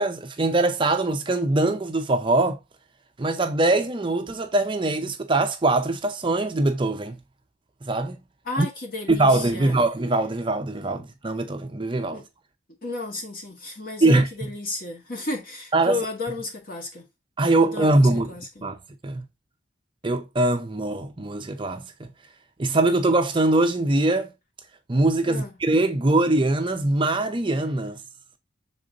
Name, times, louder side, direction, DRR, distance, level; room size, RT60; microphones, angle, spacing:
voice 1, 0.0-2.6 3.2-7.2 7.9-8.2 8.6-8.7 9.1-12.2 14.0-14.3 15.7-16.0 17.4-18.3 18.6-18.8 19.0-19.2 20.0-22.1 22.6-24.3 24.9-28.0, right 2 dB, 25° right, 0.6 m, -22 dB
voice 2, 8.5-9.8 12.1-12.3 12.8-17.0 17.6-18.6 25.3-25.5, left 2 dB, 50° left, 1.9 m, -33 dB
6.6 x 3.7 x 3.8 m
head